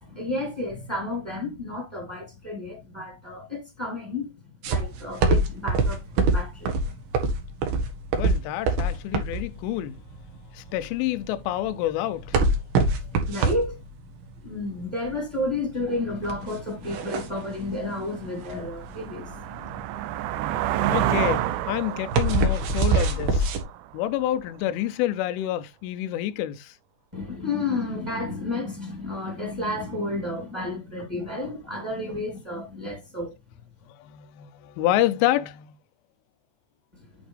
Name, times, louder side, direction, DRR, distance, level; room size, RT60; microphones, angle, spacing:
voice 1, 0.0-4.3 4.6-6.8 13.1-13.8 14.4-19.8 27.1-33.3 37.0-37.1, left 2 dB, 10° right, 2.1 m, -31 dB
sound 1, 4.6-23.6, right 3 dB, 65° right, 3.1 m, -25 dB
voice 2, 8.1-10.0 10.5-12.4 20.9-23.5 23.9-26.7 34.0-35.7, left 13 dB, 85° left, 3.2 m, -28 dB
sound 2, 17.2-17.3 17.8-24.4, right 12 dB, 85° right, 2.5 m, -30 dB
9.2 x 6.0 x 3.4 m
omnidirectional pair, 5.5 m